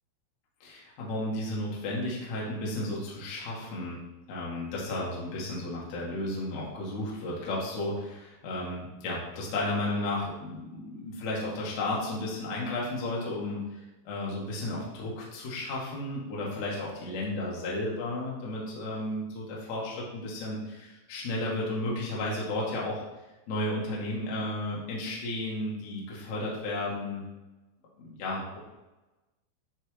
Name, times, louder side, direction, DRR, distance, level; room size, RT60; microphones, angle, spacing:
voice 1, 0.6-4.0 4.3-23.0 23.5-27.2 28.0-28.6, left 1 dB, 90° left, -4 dB, 1.6 m, -33 dB
9.9 x 3.6 x 3.2 m, 1.1 s
omnidirectional pair, 6.0 m